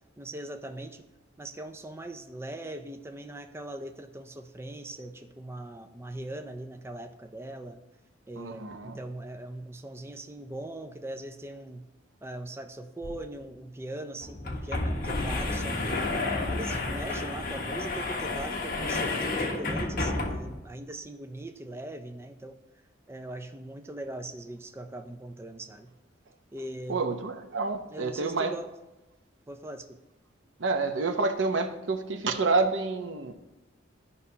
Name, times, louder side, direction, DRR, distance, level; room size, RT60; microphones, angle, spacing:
voice 1, 0.2-1.0 1.4-7.8 8.3-11.8 12.2-16.0 16.5-22.6 23.1-25.9 26.5-27.0 27.9-28.7 29.5-30.0, right 1 dB, 15° right, 6 dB, 0.4 m, -40 dB
voice 2, 8.4-9.0 26.9-28.5 30.6-33.3, right 3 dB, 80° right, 7 dB, 0.7 m, -28 dB
sound 1, 13.0-13.1 13.4-13.5 14.2-20.6, left 2 dB, 50° left, 1.2 m, -31 dB
12.5 x 5.5 x 2.8 m, 1.0 s
head